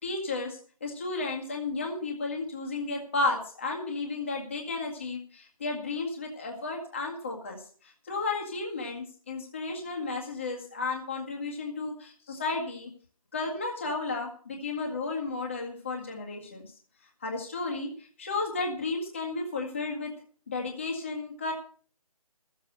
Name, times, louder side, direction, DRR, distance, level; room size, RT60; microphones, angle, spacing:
voice 1, 0.0-12.9 13.3-16.7 17.2-20.1 20.5-21.5, left 3 dB, 20° left, 0 dB, 1.9 m, -33 dB
14.5 x 7.7 x 6.5 m, 0.43 s
hypercardioid pair, 180°, 20 cm